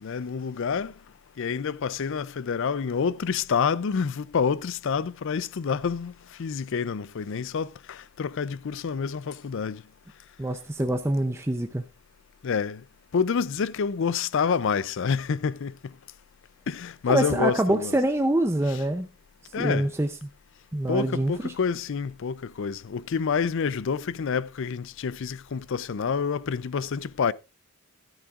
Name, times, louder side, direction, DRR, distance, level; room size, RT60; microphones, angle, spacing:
voice 1, 0.0-0.9 1.4-6.1 6.4-9.8 12.4-12.8 13.1-15.7 16.7-18.0 18.7-18.8 19.5-19.9 20.9-27.3, left 6 dB, 55° left, 0.4 m, -28 dB
voice 2, 10.4-11.8 17.1-19.1 19.6-20.1 20.7-21.5, right 1 dB, 10° right, 0.5 m, -25 dB
13.5 x 10.5 x 2.4 m
head